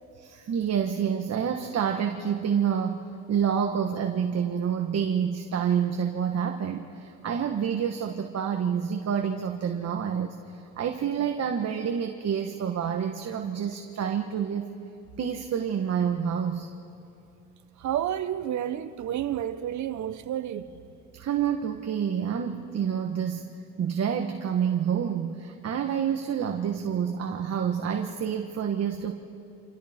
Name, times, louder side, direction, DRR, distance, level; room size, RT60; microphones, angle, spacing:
voice 1, 0.2-14.7 15.2-16.7 21.1-23.5 23.7-29.1, right 8 dB, 55° right, 1.5 m, -28 dB
voice 2, 17.8-20.7, right 10 dB, 70° right, 1.1 m, -30 dB
29.0 x 27.5 x 4.5 m
cardioid pair, 90°, 30 cm